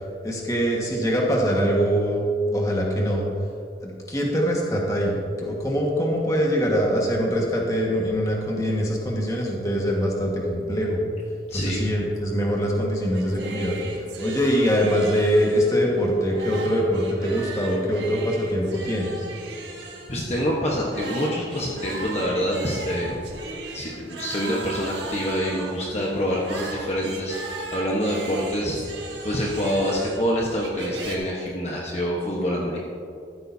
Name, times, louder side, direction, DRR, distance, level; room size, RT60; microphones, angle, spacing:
voice 1, 0.2-2.2 2.5-3.3 3.8-11.0 11.5-13.7 14.2-19.1, equal, 20° left, -2 dB, 1.6 m, -23 dB
voice 2, 11.5-11.8 19.8-23.2 23.7-27.4 27.7-28.8 29.2-32.8, equal, 35° left, -3 dB, 1.2 m, -26 dB
sound 1, 13.1-31.2, right 2 dB, 85° right, 1.7 m, -37 dB
14.0 x 12.5 x 2.8 m, 2.5 s
head